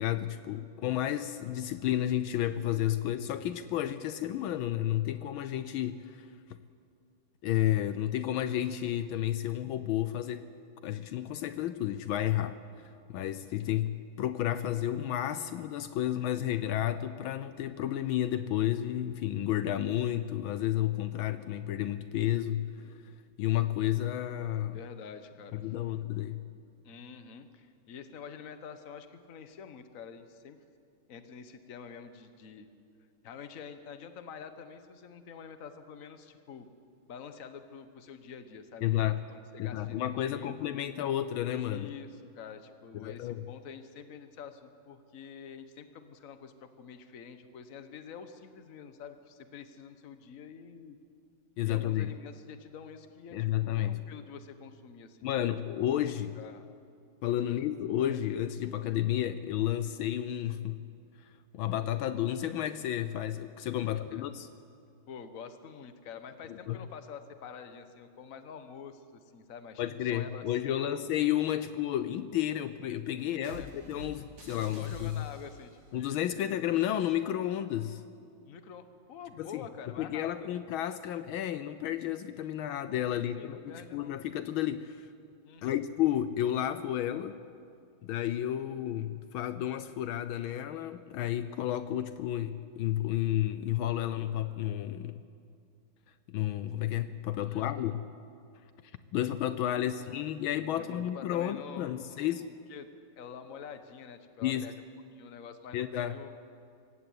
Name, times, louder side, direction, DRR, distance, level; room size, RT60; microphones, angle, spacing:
voice 1, 0.0-6.3 7.4-10.4 10.8-12.6 13.1-22.7 23.4-24.8 25.5-26.4 38.8-39.2 39.6-41.9 43.0-43.4 51.6-52.1 53.3-54.0 55.2-56.4 57.2-60.8 61.5-64.5 66.7-66.8 69.8-75.2 75.9-78.0 79.4-79.6 80.0-85.1 85.6-87.4 88.0-95.2 96.3-98.1 99.1-102.5 104.4-104.7 105.7-106.2, left 12 dB, 75° left, 12 dB, 1.5 m, -31 dB
voice 2, 24.7-25.8 26.8-30.6 31.1-32.7 33.2-36.7 37.1-40.5 41.7-51.0 51.6-55.5 56.4-56.6 57.4-57.6 64.1-64.3 65.1-71.1 73.3-73.7 74.8-76.5 78.5-80.6 83.1-84.2 85.4-85.8 97.4-97.9 99.7-100.0 100.8-102.9 103.2-104.7 105.1-106.4, left 7 dB, 45° left, 9 dB, 1.4 m, -47 dB
sound 1, 73.4-75.8, equal, 75° right, 3.8 m, -48 dB
25.0 x 15.5 x 8.7 m, 2.4 s
omnidirectional pair, 2.3 m